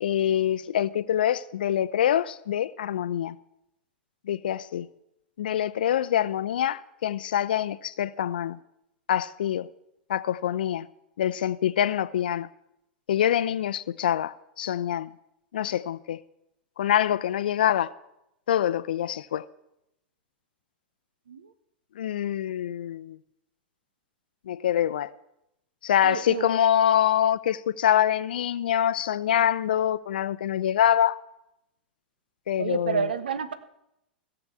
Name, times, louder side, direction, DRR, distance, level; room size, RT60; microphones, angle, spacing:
voice 1, 0.0-3.3 4.3-4.9 5.4-8.6 9.1-9.7 10.1-10.9 11.2-12.5 13.1-15.1 15.5-16.2 16.8-17.9 18.5-19.4 22.0-23.2 24.5-25.1 25.8-31.2 32.5-33.1, left 10 dB, 65° left, 0.6 m, -25 dB
voice 2, 26.0-26.5 32.6-33.5, right 6 dB, 75° right, 1.2 m, -29 dB
16.5 x 7.0 x 8.4 m
figure-of-eight pair, 95°, 5 cm